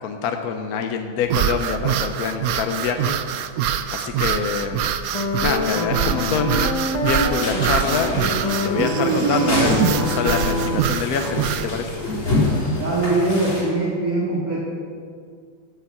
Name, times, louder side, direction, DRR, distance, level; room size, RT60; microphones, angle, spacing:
voice 1, 0.0-3.2 3.9-4.9 5.4-6.7 7.0-11.9, left 6 dB, 65° left, 5 dB, 1.0 m, -25 dB
sound 1, 1.2-11.7, right 9 dB, 85° right, 0.7 m, -24 dB
sound 2, 5.1-10.8, left 2 dB, 20° left, 1.0 m, -26 dB
sound 3, 7.4-13.6, left 2 dB, 80° left, 4.5 m, -26 dB
voice 2, 12.8-14.6, right 2 dB, 45° right, -7 dB, 2.4 m, -22 dB
11.0 x 7.1 x 7.1 m, 2.1 s
omnidirectional pair, 2.1 m